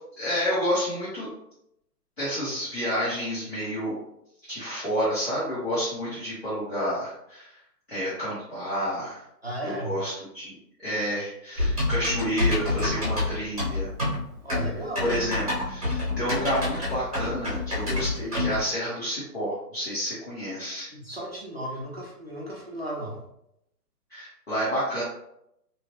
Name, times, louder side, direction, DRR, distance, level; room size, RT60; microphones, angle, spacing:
voice 1, 0.2-1.3 2.2-4.0 4.5-7.6 7.9-9.2 9.6-10.5 10.8-13.9 15.0-20.9 24.1-25.0, equal, 40° left, -10 dB, 0.9 m, -29 dB
voice 2, 9.4-10.0 14.4-15.2 20.9-23.2, right 1 dB, 40° right, -3 dB, 0.5 m, -34 dB
Typing, 11.6-18.6, left 2 dB, 20° right, 0.9 m, -27 dB
2.9 x 2.4 x 3.0 m, 0.79 s
hypercardioid pair, 180°, 50 cm